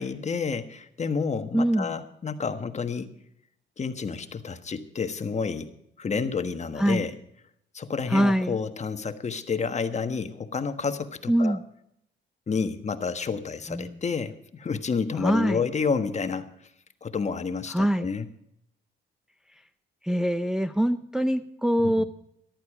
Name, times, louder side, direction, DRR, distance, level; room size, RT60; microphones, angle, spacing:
voice 1, 0.0-3.1 3.8-5.7 6.0-7.2 7.7-11.6 12.5-16.7 17.0-18.3 21.8-21.9, left 5 dB, 35° left, 9 dB, 1.4 m, -30 dB
voice 2, 1.5-1.9 6.8-7.0 8.1-8.6 11.3-11.6 13.7-14.0 15.2-15.6 17.7-18.1 20.0-22.0, equal, 5° right, 8 dB, 0.6 m, -24 dB
14.0 x 12.0 x 4.8 m, 0.74 s
cardioid pair, 90°, 20 cm